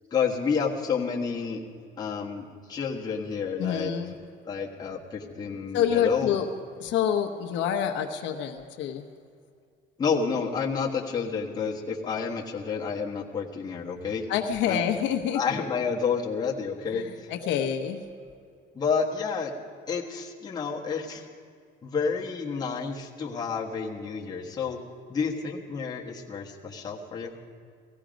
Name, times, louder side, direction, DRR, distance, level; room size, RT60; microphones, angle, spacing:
voice 1, 0.1-1.7 2.0-3.9 4.4-6.3 10.0-14.2 14.7-14.8 15.3-17.3 18.7-19.5 19.9-21.3 21.8-24.8 25.1-27.3, left 5 dB, 20° left, -2 dB, 1.3 m, -30 dB
voice 2, 3.6-4.1 5.7-6.5 6.8-9.0 14.3-15.4 16.9-18.0, left 8 dB, 65° left, 4 dB, 1.0 m, -27 dB
17.5 x 14.5 x 5.1 m, 2.2 s
cardioid pair, 175°, 20 cm